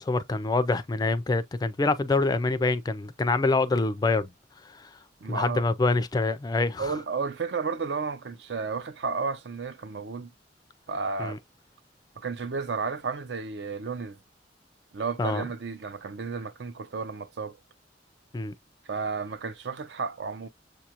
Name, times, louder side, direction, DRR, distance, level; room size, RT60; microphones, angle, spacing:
voice 1, 0.0-4.3 4.7-4.9 5.3-6.9 11.2-11.4 15.2-15.5 18.3-18.5, left 3 dB, 20° left, 0.3 m, -26 dB
voice 2, 5.2-5.6 6.8-10.3 10.9-11.4 12.2-14.2 14.9-17.6 18.9-20.5, right 4 dB, 65° right, 0.5 m, -32 dB
6.6 x 2.4 x 2.8 m
head